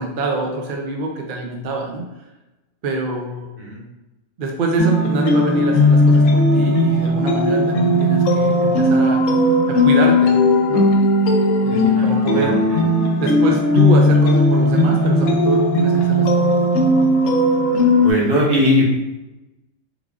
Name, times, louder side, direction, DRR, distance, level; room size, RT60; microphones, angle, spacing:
voice 1, 0.0-2.1 2.8-3.5 4.4-9.2 9.7-10.4 10.7-10.9 11.6-12.6 13.2-16.7, right 2 dB, 70° right, 1 dB, 0.5 m, -25 dB
sound 1, 4.8-18.1, left 1 dB, 75° left, 0.9 m, -16 dB
voice 2, 18.0-19.0, left 1 dB, 45° right, -5 dB, 1.1 m, -18 dB
3.5 x 3.2 x 2.4 m, 1.0 s
omnidirectional pair, 1.4 m